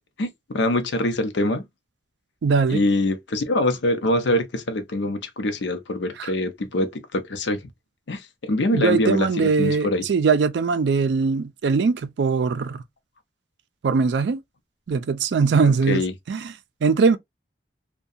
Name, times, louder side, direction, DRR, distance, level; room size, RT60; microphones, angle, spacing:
voice 1, 0.2-1.6 2.7-7.6 8.1-10.0 15.6-16.1, left 1 dB, 80° left, 0.6 m, -24 dB
voice 2, 2.4-2.8 6.2-6.3 8.7-12.8 13.8-14.4 14.9-16.5 16.8-17.2, right 5 dB, 70° right, 0.4 m, -21 dB
2.7 x 2.2 x 2.3 m
head